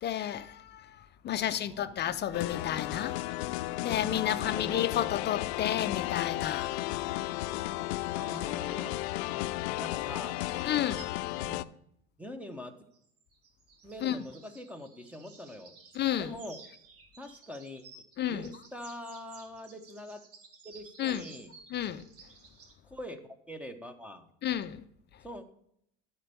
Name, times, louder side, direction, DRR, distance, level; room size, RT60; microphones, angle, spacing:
voice 1, 0.0-3.2 3.8-6.7 10.6-11.1 14.0-14.2 15.9-16.3 18.2-18.5 21.0-21.2 21.7-22.0 24.4-24.8, left 11 dB, 35° left, 0.5 m, -31 dB
voice 2, 1.3-2.0 8.1-9.0 9.8-10.4 11.3-11.7 12.2-12.8 13.8-15.7 16.2-16.6 17.2-17.8 18.3-20.2 20.6-21.5 22.8-24.3 25.2-25.4, equal, 5° right, 0.9 m, -44 dB
sound 1, 2.3-11.6, left 17 dB, 85° left, 0.5 m, -34 dB
sound 2, 10.0-11.6 12.9-18.2 18.4-22.7, right 4 dB, 45° right, 2.2 m, -55 dB
11.5 x 4.4 x 6.8 m
supercardioid pair, 115°, 32 cm